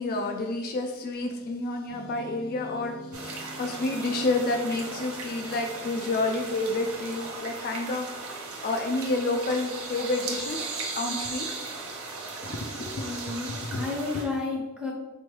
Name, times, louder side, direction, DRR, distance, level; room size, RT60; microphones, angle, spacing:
voice 1, 0.0-8.1 8.6-10.7 10.9-11.5 12.4-13.8 14.1-14.2, left 2 dB, 45° left, 3 dB, 0.3 m, -30 dB
sound 1, 1.9-7.4, equal, 90° left, 1.2 m, -46 dB
sound 2, 3.1-14.2, right 3 dB, 75° right, 0.8 m, -37 dB
voice 2, 12.9-14.9, left 3 dB, 5° right, -1 dB, 0.7 m, -32 dB
4.1 x 3.0 x 3.1 m, 1.2 s
head